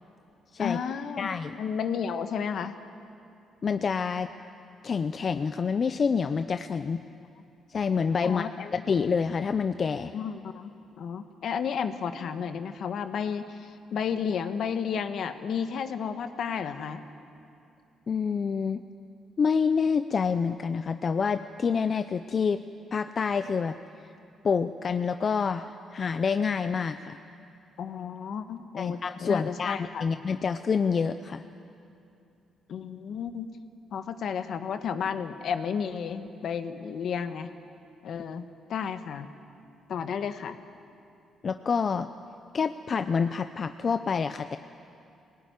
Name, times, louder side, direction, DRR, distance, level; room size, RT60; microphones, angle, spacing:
voice 1, 0.6-1.3 1.6-2.7 7.0-7.2 8.2-8.8 10.1-10.7 11.0-17.0 27.8-30.1 32.7-33.5 33.9-37.5 38.0-39.3 39.9-40.6, left 7 dB, 65° left, 9 dB, 1.3 m, -32 dB
voice 2, 1.2-1.6 3.6-4.3 4.8-7.0 7.7-8.4 8.7-10.1 18.1-18.8 19.4-22.6 22.9-23.8 24.4-27.2 28.8-31.4 41.4-42.1 42.5-44.6, left 5 dB, 45° left, 10 dB, 0.6 m, -27 dB
21.5 x 18.0 x 9.5 m, 2.7 s
cardioid pair, 90°, 0 cm